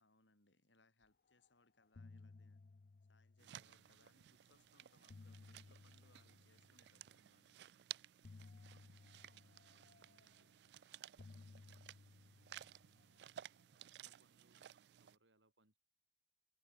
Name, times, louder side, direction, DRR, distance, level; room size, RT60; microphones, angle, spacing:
voice 1, 0.0-2.6 3.1-7.6 11.2-11.8, left 2 dB, 85° left, 5.0 m, -74 dB
sound 1, 1.3-1.5 1.8-4.1 4.8-7.2 8.2-10.7 11.2-13.8, left 3 dB, 55° left, 0.5 m, -61 dB
sound 2, 3.4-15.2, right 12 dB, 65° right, 0.3 m, -57 dB
voice 2, 9.2-10.5 13.8-14.6 14.9-15.8, right 2 dB, 85° right, 5.9 m, -77 dB
head